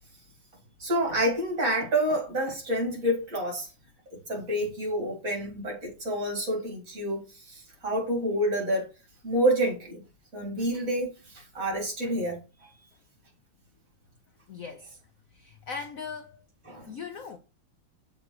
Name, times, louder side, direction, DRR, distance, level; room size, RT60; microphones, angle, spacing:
voice 1, 0.8-3.7 4.3-8.9 9.2-10.0 10.3-12.4 16.7-16.9, right 1 dB, 40° right, 2.4 m, -28 dB
voice 2, 12.6-12.9 14.5-15.0 15.3-16.4 16.9-17.4, left 5 dB, 75° left, 0.7 m, -40 dB
7.1 x 3.8 x 4.6 m
omnidirectional pair, 2.3 m